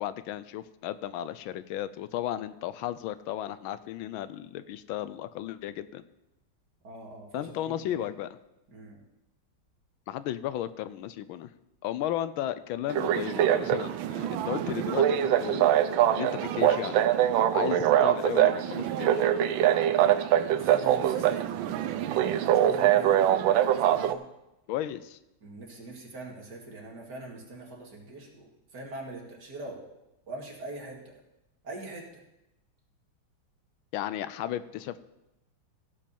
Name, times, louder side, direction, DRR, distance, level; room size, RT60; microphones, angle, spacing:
voice 1, 0.0-6.0 7.3-8.3 10.1-11.5 11.8-15.8 16.2-17.0 17.5-19.2 24.7-25.2 33.9-35.0, left 12 dB, 85° left, 14 dB, 1.4 m, -34 dB
voice 2, 6.8-8.1 8.7-9.0 17.5-17.7 20.5-21.4 22.4-23.2 23.8-24.2 25.4-29.8 30.3-31.1 31.6-32.2, right 2 dB, 55° right, -1 dB, 2.8 m, -42 dB
sound 1, 12.9-24.1, right 11 dB, 75° right, 1.4 m, -24 dB
16.0 x 5.4 x 7.0 m, 0.91 s
omnidirectional pair, 2.2 m